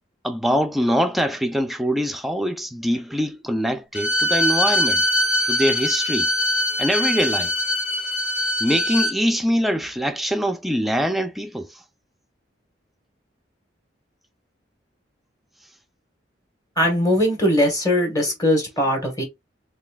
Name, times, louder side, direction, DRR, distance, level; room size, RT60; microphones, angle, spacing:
voice 1, 0.2-5.0 5.5-6.3 6.8-7.5 8.6-11.7, equal, ahead, 0.4 m, -23 dB
Bowed string instrument, 3.9-9.2, left 1 dB, 75° left, 1.2 m, -22 dB
voice 2, 16.8-19.2, left 1 dB, 20° left, 1.5 m, -20 dB
4.2 x 3.4 x 2.4 m
head